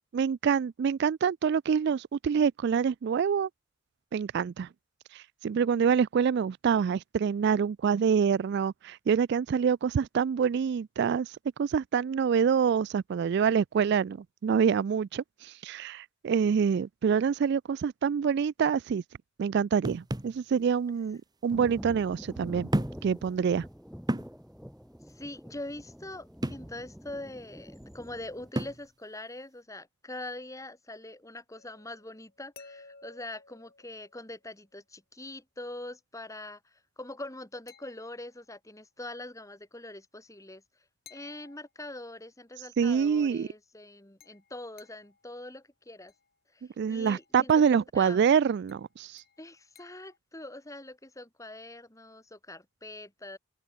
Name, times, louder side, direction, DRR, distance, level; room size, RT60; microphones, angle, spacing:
voice 1, 0.1-3.5 4.1-4.7 5.1-14.2 14.4-19.0 19.4-22.7 23.0-23.7 42.8-43.5 46.8-49.2, right 7 dB, 55° right, 0.3 m, -26 dB
sound 1, 19.8-20.4 21.5-21.6 22.7-23.1 23.5-23.6 24.1-24.4 26.4-26.7 28.6-28.9, right 1 dB, 20° right, 1.1 m, -31 dB
Thunder, 21.5-28.5, equal, ahead, 1.8 m, -46 dB
voice 2, 25.2-36.6 37.0-40.6 41.1-46.1 46.9-47.5 47.9-48.2 49.4-53.4, left 2 dB, 15° left, 2.9 m, -43 dB
sound 2, 31.5-34.6 37.7-38.5 41.1-42.3 44.2-45.3 46.1-46.3 47.1-47.8 48.7-50.2, left 5 dB, 50° left, 6.8 m, -57 dB
open air
head